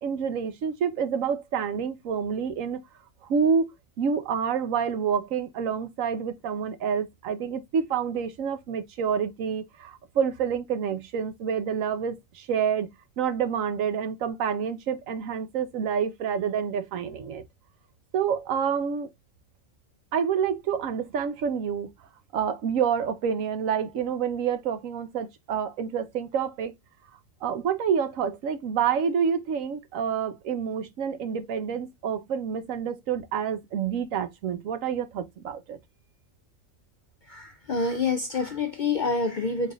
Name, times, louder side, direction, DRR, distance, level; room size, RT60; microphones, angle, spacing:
voice 1, 0.0-2.8 3.2-3.7 4.0-12.9 13.2-17.4 18.1-19.1 20.1-21.9 22.3-26.7 27.4-35.8, right 7 dB, 85° right, 1.1 m, -28 dB
voice 2, 37.3-39.7, left 4 dB, 65° left, 0.4 m, -27 dB
4.0 x 3.5 x 2.3 m
omnidirectional pair, 1.3 m